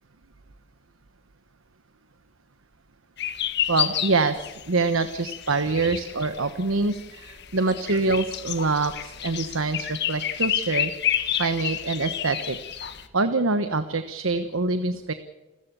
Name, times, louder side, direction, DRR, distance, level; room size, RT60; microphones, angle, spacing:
sound 1, 3.2-13.1, left 10 dB, 55° left, 1.5 m, -30 dB
voice 1, 3.7-10.9 11.4-12.6 12.8-15.1, right 3 dB, 85° right, 10 dB, 1.2 m, -25 dB
29.5 x 14.5 x 7.0 m, 1.1 s
head